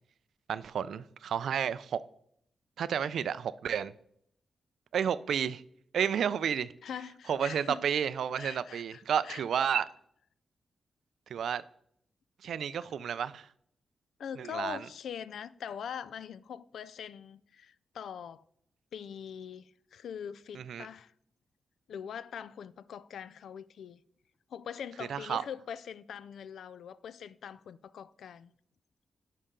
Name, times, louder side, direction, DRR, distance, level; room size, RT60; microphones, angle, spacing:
voice 1, 0.5-2.0 2.8-3.9 4.9-5.6 5.9-6.7 7.3-9.9 11.3-11.6 12.4-13.5 14.4-14.9 20.5-20.9 25.1-25.4, right 8 dB, 80° right, 0.3 m, -31 dB
voice 2, 6.8-7.8 8.4-9.4 14.2-18.4 18.9-21.1 21.9-24.0 24.5-28.5, left 8 dB, 85° left, 0.3 m, -42 dB
9.9 x 5.5 x 3.7 m
wide cardioid pair, 145°, 0 cm